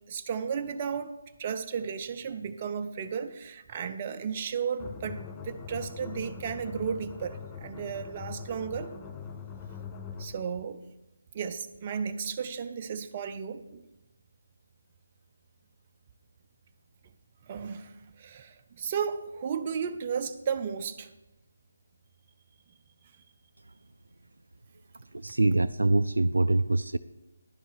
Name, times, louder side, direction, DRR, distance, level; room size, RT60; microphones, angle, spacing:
voice 1, 0.1-1.1 1.4-8.9 10.2-10.8 11.3-13.8 17.5-21.1, right 6 dB, 30° right, 7 dB, 0.6 m, -34 dB
sound 1, 4.8-10.5, left 6 dB, 15° left, 0.5 m, -42 dB
voice 2, 25.2-27.0, right 2 dB, 75° right, 12 dB, 0.4 m, -24 dB
11.0 x 5.4 x 6.9 m, 0.96 s
figure-of-eight pair, 150°, 0 cm